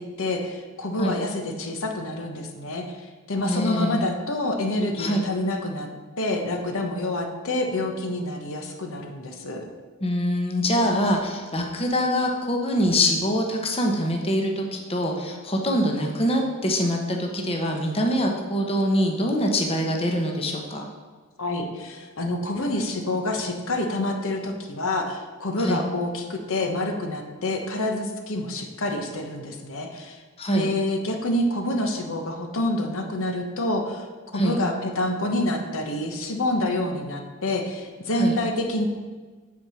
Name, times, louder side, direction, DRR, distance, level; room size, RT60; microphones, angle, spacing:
voice 1, 0.0-5.9 6.2-9.6 21.4-30.2 30.5-34.1 34.3-38.9, left 1 dB, 65° left, 3 dB, 1.1 m, -27 dB
voice 2, 3.5-4.1 5.0-5.2 10.0-20.9 25.6-25.8 30.4-30.7 34.3-34.6 38.1-38.4, equal, 25° left, 1 dB, 1.0 m, -24 dB
8.7 x 4.8 x 7.0 m, 1.4 s
head